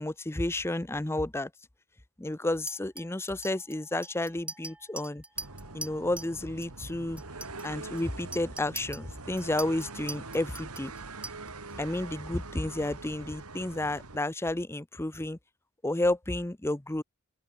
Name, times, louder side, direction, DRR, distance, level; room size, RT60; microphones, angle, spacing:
voice 1, 0.0-1.5 2.2-5.2 5.7-7.2 7.6-10.9 11.8-15.4 15.8-17.0, left 1 dB, 10° left, 0.6 m, -31 dB
Chink clink, 2.7-6.4 6.6-6.9 7.2-11.7, right 2 dB, 5° right, 4.6 m, -43 dB
sound 1, 5.4-14.2, right 3 dB, 80° right, 3.0 m, -44 dB
open air
head